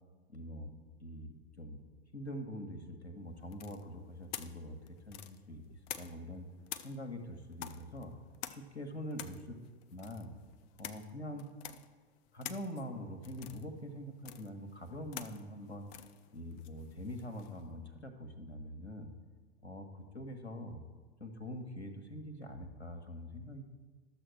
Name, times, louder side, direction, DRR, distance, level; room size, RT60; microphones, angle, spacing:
voice 1, 0.3-0.7 1.0-1.8 2.1-6.5 6.8-8.1 8.5-9.6 9.9-10.3 10.8-11.5 12.3-15.9 16.3-19.1 19.6-19.9 20.1-20.8 21.2-23.7, equal, 85° left, 5 dB, 1.2 m, -44 dB
sound 1, 3.5-6.3 6.7-17.6, left 11 dB, 35° left, 0.5 m, -49 dB
12.0 x 6.9 x 4.7 m, 1.4 s
figure-of-eight pair, 90°, 33 cm